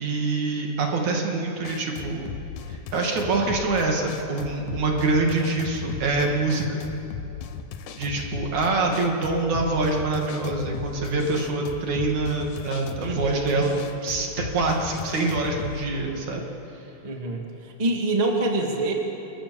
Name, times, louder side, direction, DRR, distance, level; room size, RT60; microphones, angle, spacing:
voice 1, 0.0-2.3 2.7-6.8 8.0-13.7 14.0-16.4, right 3 dB, 55° right, 1 dB, 3.4 m, -25 dB
sound 1, 1.6-15.9, left 6 dB, 70° left, 2.4 m, -37 dB
voice 2, 13.0-13.7 15.9-16.1 17.0-17.5 17.8-18.9, right 2 dB, 15° right, 1 dB, 1.7 m, -26 dB
29.0 x 21.0 x 7.1 m, 3.0 s
omnidirectional pair, 4.2 m